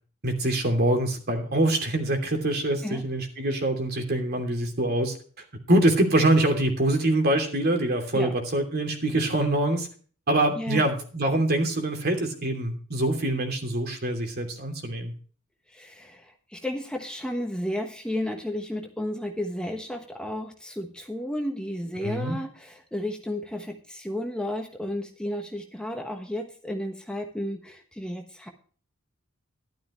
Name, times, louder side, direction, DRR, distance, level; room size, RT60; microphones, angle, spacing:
voice 1, 0.2-5.1 5.7-9.9 10.3-15.1 22.0-22.4, right 1 dB, 50° right, 4 dB, 2.9 m, -24 dB
voice 2, 10.6-10.9 15.7-28.5, left 1 dB, 5° left, 3 dB, 1.2 m, -33 dB
13.0 x 12.0 x 3.1 m, 0.41 s
head